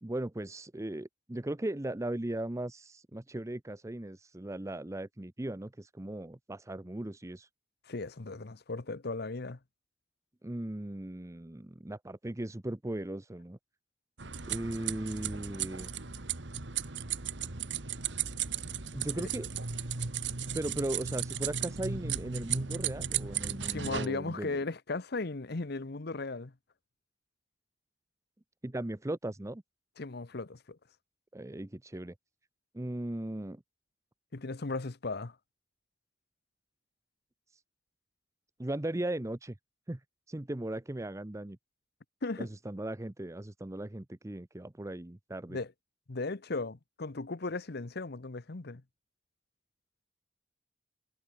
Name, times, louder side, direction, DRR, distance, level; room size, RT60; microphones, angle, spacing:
voice 1, 0.0-7.5 10.4-13.6 14.4-15.9 18.9-19.5 20.5-24.6 28.6-29.6 31.3-32.1 32.7-33.6 38.6-39.6 39.9-40.0 40.3-41.6 42.4-45.6, right 1 dB, 15° right, 0.7 m, -37 dB
voice 2, 7.9-9.6 23.7-26.5 30.0-30.8 34.3-35.3 42.2-42.5 45.5-45.7 46.1-48.8, left 3 dB, 60° left, 1.0 m, -36 dB
sound 1, 14.2-24.1, right 8 dB, 65° right, 1.9 m, -35 dB
head